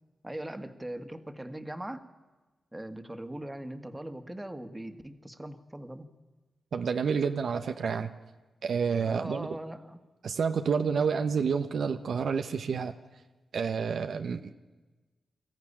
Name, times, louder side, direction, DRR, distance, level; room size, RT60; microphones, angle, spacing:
voice 1, 0.2-2.0 2.7-6.1 9.0-10.0, right 1 dB, 15° right, 8 dB, 1.8 m, -40 dB
voice 2, 6.7-8.1 8.6-9.5 10.2-12.9 13.5-14.5, right 6 dB, 70° right, 8 dB, 0.9 m, -29 dB
22.0 x 14.0 x 9.9 m, 1.2 s
cardioid pair, 50°, 0 cm